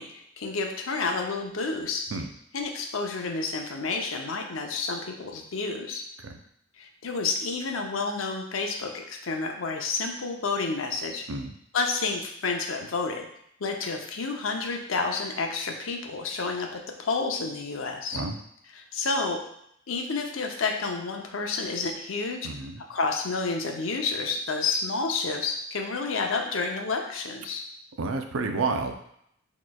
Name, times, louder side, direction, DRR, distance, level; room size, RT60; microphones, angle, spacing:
voice 1, 0.0-2.1 2.5-6.1 6.8-11.3 11.7-13.3 13.6-18.2 18.7-19.4 19.9-22.5 22.9-27.6, left 4 dB, 80° left, 3 dB, 0.6 m, -30 dB
voice 2, 22.4-22.8 28.0-28.9, right 3 dB, 80° right, 5 dB, 0.5 m, -30 dB
6.2 x 3.0 x 2.3 m, 0.73 s
head